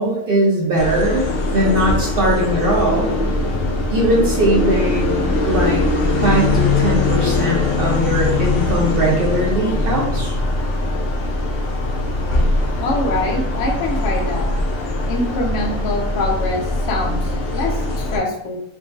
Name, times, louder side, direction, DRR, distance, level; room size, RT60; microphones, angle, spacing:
voice 1, 0.0-3.1 3.9-5.8 6.2-10.3, right 1 dB, 75° right, -3 dB, 0.5 m, -20 dB
sound 1, 0.8-18.2, left 2 dB, 75° left, 0.5 m, -21 dB
voice 2, 12.8-14.5 15.1-18.6, left 2 dB, 60° left, 0 dB, 0.9 m, -24 dB
3.7 x 2.2 x 2.4 m, 0.77 s
omnidirectional pair, 1.7 m